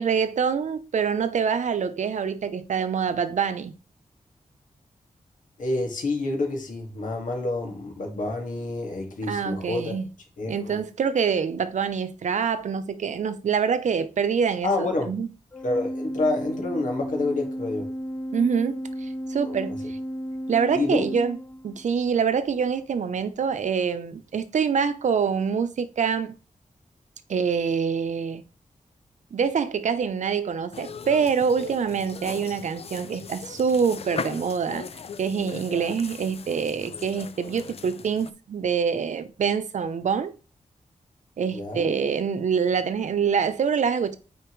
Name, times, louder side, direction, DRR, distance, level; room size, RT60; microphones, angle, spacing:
voice 1, 0.0-3.7 9.3-10.1 10.5-15.3 18.3-20.0 20.5-21.4 21.6-26.3 27.3-28.4 29.3-34.9 35.2-40.3 41.4-44.2, right 6 dB, 70° right, 0.7 m, -25 dB
voice 2, 5.6-10.0 10.4-10.8 14.6-15.1 15.6-17.9 19.4-19.5 20.7-21.1 41.5-41.9, left 2 dB, 85° left, 2.1 m, -28 dB
Organ, 15.5-22.1, equal, 10° left, 0.8 m, -33 dB
sound 1, 30.7-38.3, left 6 dB, 50° left, 0.5 m, -39 dB
9.1 x 4.4 x 3.1 m
wide cardioid pair, 170°, 13 cm